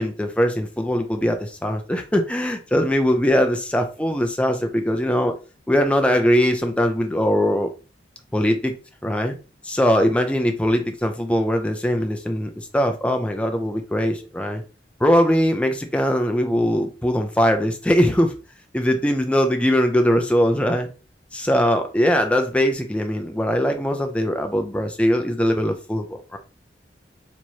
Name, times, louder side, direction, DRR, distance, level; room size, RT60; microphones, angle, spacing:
voice 1, 0.0-5.3 5.7-7.7 8.3-8.7 9.0-9.3 9.6-14.6 15.0-18.3 18.7-20.9 21.3-26.4, equal, 5° left, 0.5 m, -21 dB
4.5 x 3.0 x 2.7 m
head